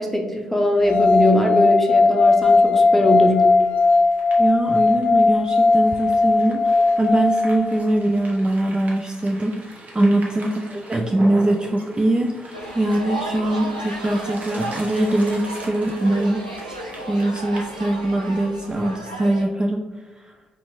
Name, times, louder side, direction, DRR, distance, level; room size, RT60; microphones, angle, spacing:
voice 1, 0.0-3.5 10.0-10.1, left 1 dB, 5° left, 2 dB, 0.9 m, -21 dB
sound 1, 0.8-7.9, left 3 dB, 55° left, 0.5 m, -17 dB
sound 2, 3.4-18.8, right 1 dB, 40° right, 1.0 m, -41 dB
voice 2, 4.4-16.4 17.1-19.8 20.2-20.3, right 1 dB, 20° right, 3 dB, 0.3 m, -22 dB
sound 3, 12.5-19.4, right 1 dB, 90° right, 0.4 m, -34 dB
4.4 x 3.1 x 2.7 m, 1.2 s
figure-of-eight pair, 40°, 4 cm